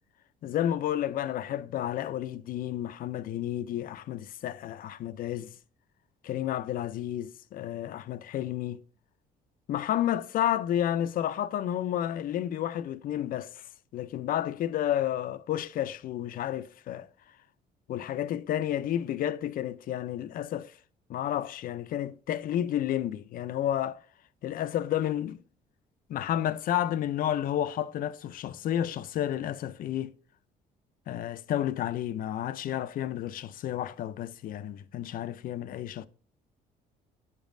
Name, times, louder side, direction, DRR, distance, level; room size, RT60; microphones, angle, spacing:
voice 1, 0.4-5.5 6.2-8.8 9.7-13.6 13.9-17.1 17.9-20.7 21.1-24.0 24.4-25.4 26.1-30.1 31.1-36.1, left 11 dB, 55° left, 0.5 m, -31 dB
9.7 x 5.2 x 2.6 m
cardioid pair, 110°, 17 cm